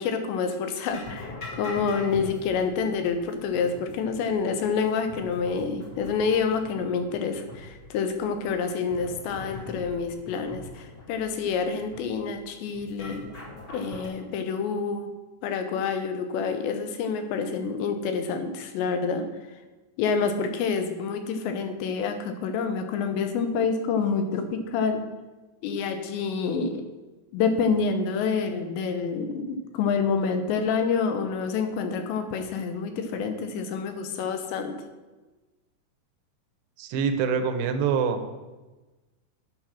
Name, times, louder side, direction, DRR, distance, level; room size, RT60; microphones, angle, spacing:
voice 1, 0.0-13.2 13.7-15.1 15.4-19.3 20.0-25.0 25.6-26.8 27.3-34.8, left 5 dB, 85° left, 7 dB, 3.2 m, -27 dB
sound 1, 0.9-14.1, left 1 dB, 40° left, 1.5 m, -42 dB
voice 2, 36.8-38.2, right 6 dB, 80° right, 7 dB, 2.7 m, -25 dB
10.0 x 5.7 x 6.1 m, 1.2 s
omnidirectional pair, 5.0 m